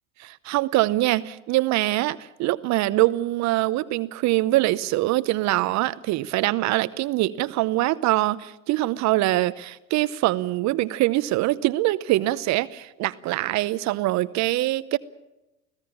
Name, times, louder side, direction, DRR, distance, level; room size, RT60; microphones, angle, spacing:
voice 1, 0.2-15.0, right 17 dB, 45° right, 16 dB, 0.8 m, -23 dB
25.0 x 16.5 x 7.2 m, 0.96 s
hypercardioid pair, 90°, 37 cm